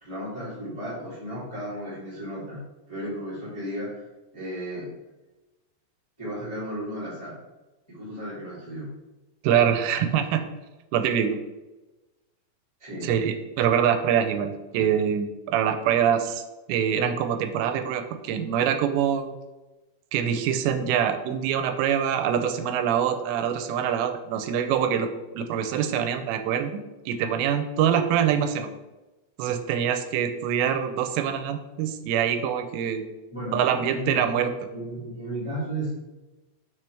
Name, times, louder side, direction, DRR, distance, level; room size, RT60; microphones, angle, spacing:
voice 1, 0.0-2.6 2.9-4.0 4.3-4.9 6.2-7.4 7.9-8.9 12.8-13.1 15.8-15.9 33.3-33.6 33.9-34.3 34.7-35.9, equal, 15° left, -8 dB, 1.2 m, -34 dB
voice 2, 9.4-10.4 10.9-11.4 13.0-16.4 16.7-19.4 20.1-25.1 25.4-28.7 29.4-33.1 33.5-34.5, right 8 dB, 85° right, 8 dB, 2.8 m, -24 dB
6.7 x 6.5 x 3.3 m, 1.1 s
omnidirectional pair, 5.0 m